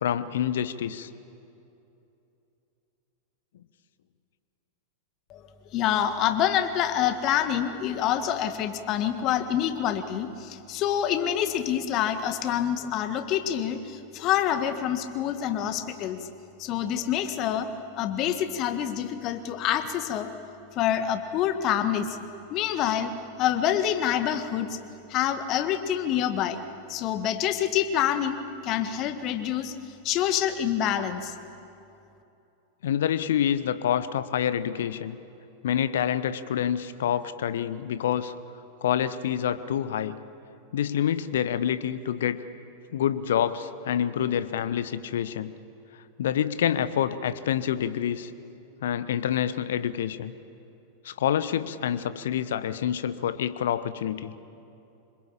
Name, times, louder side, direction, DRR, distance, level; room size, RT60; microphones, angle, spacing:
voice 1, 0.0-1.1 32.8-35.2 35.6-38.3 38.8-40.2 40.7-42.4 42.9-45.5 46.2-48.3 48.8-50.3 51.0-54.3, left 9 dB, 60° left, 13 dB, 1.1 m, -27 dB
voice 2, 5.7-16.3 16.6-20.3 20.7-24.8 25.1-26.6 26.9-28.4 28.6-29.7 30.0-31.3, left 10 dB, 35° left, 9 dB, 1.7 m, -27 dB
26.0 x 21.0 x 8.8 m, 2.8 s
figure-of-eight pair, 90°, 0 cm